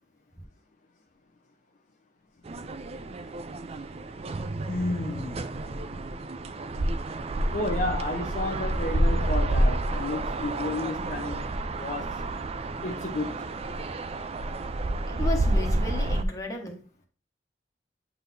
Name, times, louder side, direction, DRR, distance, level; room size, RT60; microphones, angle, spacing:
sound 1, 2.5-16.2, right 1 dB, 35° right, 0.4 m, -29 dB
voice 1, 4.7-5.4 7.5-11.5 11.8-12.2 12.8-13.3, left 2 dB, 45° left, 0.8 m, -31 dB
voice 2, 15.1-16.8, left 1 dB, 20° left, 1.3 m, -34 dB
8.6 x 4.2 x 2.7 m
head